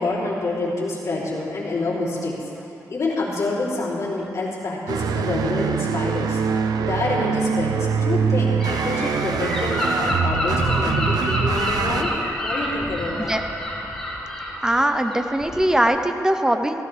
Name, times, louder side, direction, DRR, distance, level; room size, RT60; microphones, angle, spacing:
voice 1, 0.0-2.5 2.9-6.4 6.8-12.1 12.4-13.3, left 2 dB, 55° left, -6 dB, 3.4 m, -27 dB
sound 1, 4.9-12.0, right 6 dB, 85° right, 0.6 m, -24 dB
Gull seagull / Wind, 8.6-15.9, left 1 dB, 5° left, 3.8 m, -27 dB
voice 2, 14.6-16.8, right 1 dB, 10° right, 7 dB, 0.8 m, -21 dB
15.5 x 15.0 x 3.5 m, 2.8 s
cardioid pair, 105°, 6 cm